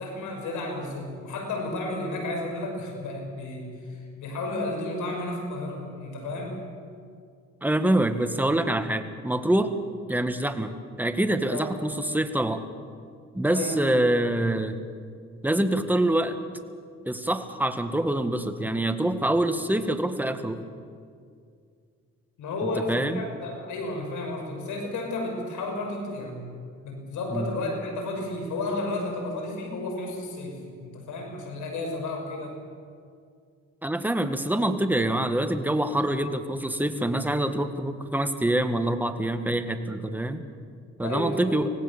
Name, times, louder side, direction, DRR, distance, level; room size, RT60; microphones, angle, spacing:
voice 1, 0.0-6.6 11.5-11.7 13.5-13.8 22.4-26.5 26.8-32.6 41.0-41.6, left 2 dB, 80° left, 2 dB, 6.1 m, -32 dB
voice 2, 7.6-9.7 10.1-10.7 11.0-12.6 13.3-14.8 15.4-16.4 17.0-20.6 22.9-23.2 27.3-27.5 33.8-40.4 41.0-41.7, right 1 dB, 5° right, 8 dB, 1.6 m, -25 dB
25.0 x 18.0 x 7.2 m, 2.2 s
cardioid pair, 90°, 30 cm